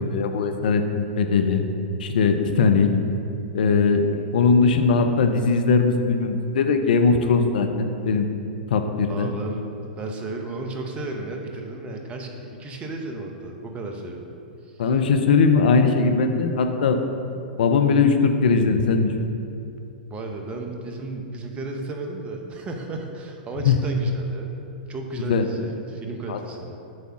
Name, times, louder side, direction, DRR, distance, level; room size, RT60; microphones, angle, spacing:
voice 1, 0.0-1.6 2.0-2.9 3.5-4.0 4.3-8.3 8.7-9.3 14.8-17.0 17.6-19.1 23.6-23.8 25.3-25.5 26.3-26.4, left 4 dB, 65° left, 6 dB, 0.6 m, -20 dB
voice 2, 9.1-14.3 14.6-14.9 20.1-24.5 24.9-26.8, right 2 dB, 25° right, 3 dB, 0.9 m, -34 dB
7.6 x 3.6 x 5.9 m, 2.6 s
figure-of-eight pair, 105°, 5 cm